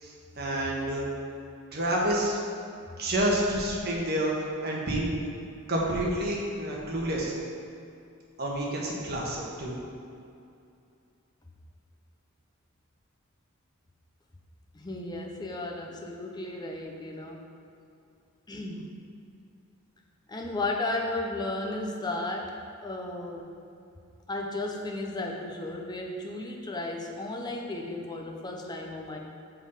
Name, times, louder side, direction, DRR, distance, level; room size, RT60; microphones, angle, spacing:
voice 1, 0.0-1.1 1.7-2.4 3.0-4.3 4.6-5.1 5.7-7.3 8.4-9.8, right 1 dB, 50° right, -3 dB, 1.4 m, -29 dB
voice 2, 14.7-17.5 18.5-18.9 20.3-23.5 24.3-29.2, left 2 dB, 20° left, 1 dB, 0.6 m, -34 dB
5.7 x 5.3 x 4.9 m, 2.5 s
head